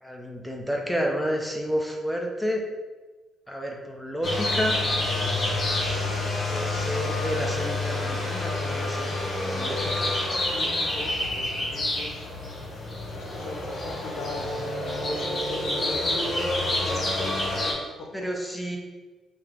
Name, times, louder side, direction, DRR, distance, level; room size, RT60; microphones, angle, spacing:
voice 1, 0.0-2.6 3.5-4.8 6.5-10.1 18.1-18.8, equal, ahead, 0 dB, 0.7 m, -30 dB
sound 1, 4.2-17.7, left 2 dB, 40° left, 1.2 m, -28 dB
voice 2, 9.5-9.9 10.3-10.7 10.9-12.3 12.7-17.8, left 2 dB, 80° left, 1 dB, 0.6 m, -40 dB
3.3 x 2.9 x 3.6 m, 1.2 s
cardioid pair, 90°, 0 cm